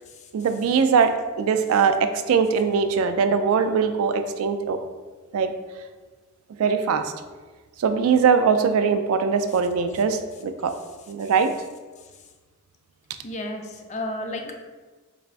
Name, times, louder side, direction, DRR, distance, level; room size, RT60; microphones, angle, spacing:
voice 1, 0.3-1.1 1.4-4.8 5.3-5.5 6.6-7.1 7.8-10.7 11.1-11.5, right 6 dB, 70° right, 8 dB, 0.3 m, -21 dB
voice 2, 13.2-14.5, left 1 dB, 35° left, 3 dB, 0.4 m, -32 dB
4.1 x 3.4 x 2.4 m, 1.3 s
head